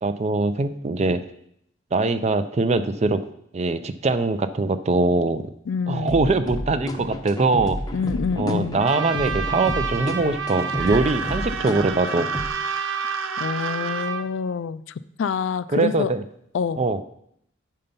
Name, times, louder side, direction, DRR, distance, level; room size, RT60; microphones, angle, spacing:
voice 1, 0.0-1.2 1.9-3.2 3.5-5.5 5.9-7.8 8.4-12.3 15.7-16.2 16.8-17.0, right 3 dB, 35° right, 11 dB, 0.4 m, -22 dB
voice 2, 5.7-6.1 7.9-8.9 13.4-16.1 16.5-16.8, left 6 dB, 70° left, 16 dB, 0.3 m, -27 dB
sound 1, 6.1-12.5, equal, 20° left, 0.6 m, -31 dB
Trumpet, 8.8-14.3, right 5 dB, 65° right, 0.8 m, -30 dB
sound 2, 10.6-14.1, right 7 dB, 90° right, 0.5 m, -34 dB
8.8 x 5.6 x 5.3 m, 0.73 s
head